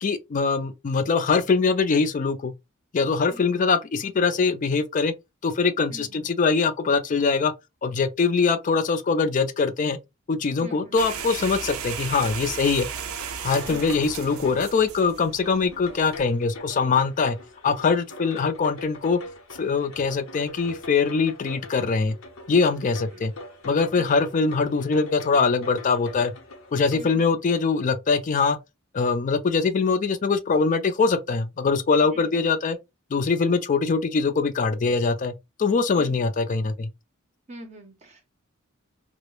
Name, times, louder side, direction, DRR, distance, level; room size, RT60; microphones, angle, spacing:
voice 1, 0.0-2.5 2.9-5.1 5.4-7.5 7.8-10.0 10.3-12.9 13.4-17.4 17.6-19.2 19.6-22.2 22.5-23.3 23.6-26.3 26.7-28.6 28.9-32.8 33.1-35.3 35.6-36.9, left 4 dB, 40° left, 0.4 m, -23 dB
voice 2, 3.3-3.7 5.9-6.3 10.6-11.0 13.7-14.0 23.1-23.3 24.0-24.2 26.9-27.3 32.1-32.3 36.0-36.3 37.5-38.3, right 1 dB, 30° right, 0.6 m, -44 dB
sound 1, 11.0-16.2, right 7 dB, 90° right, 0.4 m, -35 dB
sound 2, 12.6-27.0, left 2 dB, 80° left, 0.7 m, -43 dB
2.2 x 2.0 x 3.0 m
head